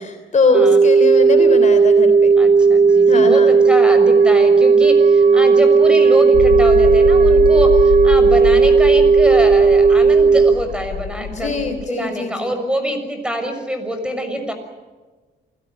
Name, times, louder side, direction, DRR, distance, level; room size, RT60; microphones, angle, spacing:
voice 1, 0.0-2.3 3.1-3.6 11.2-12.6, left 3 dB, 35° left, 7 dB, 3.3 m, -21 dB
sound 1, 0.5-10.5, right 5 dB, 60° right, 1.9 m, -12 dB
sound 2, 1.1-11.5, right 5 dB, 45° right, 2.7 m, -34 dB
voice 2, 2.4-14.5, right 1 dB, 5° right, 7 dB, 6.4 m, -25 dB
sound 3, 6.3-11.9, left 11 dB, 75° left, 1.1 m, -25 dB
27.5 x 17.5 x 9.7 m, 1.3 s
cardioid pair, 90°, 20 cm